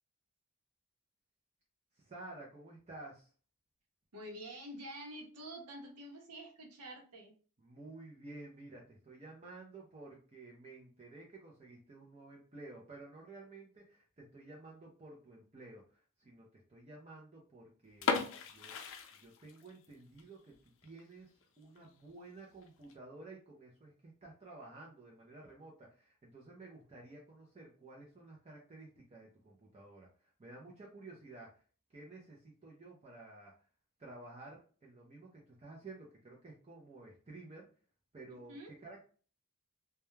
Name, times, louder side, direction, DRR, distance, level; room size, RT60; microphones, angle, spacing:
voice 1, 2.0-3.3 7.6-18.2 18.5-18.7 19.2-31.6 31.9-33.5 34.0-37.7 38.1-39.1, right 2 dB, 30° right, -2 dB, 0.5 m, -53 dB
voice 2, 4.1-7.3 38.3-38.7, right 1 dB, 90° right, 2 dB, 0.8 m, -48 dB
sound 1, 17.9-19.9 20.2-20.3 20.8-21.0 21.4-21.5 21.8-21.9 22.6-22.9, left 5 dB, 60° left, 0.4 m, -36 dB
2.2 x 2.2 x 3.0 m, 0.40 s
head